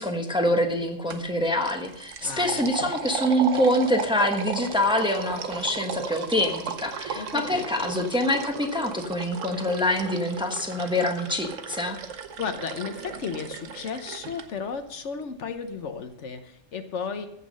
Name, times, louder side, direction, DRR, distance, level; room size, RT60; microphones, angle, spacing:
voice 1, 0.0-12.0, left 1 dB, 5° right, 3 dB, 1.0 m, -25 dB
sound 1, 1.1-1.3 1.6-14.4, right 6 dB, 85° right, 1.3 m, -35 dB
voice 2, 2.2-2.9 7.1-7.9 12.1-17.3, left 6 dB, 70° left, 8 dB, 1.2 m, -34 dB
15.0 x 6.0 x 6.3 m, 0.76 s
omnidirectional pair, 1.3 m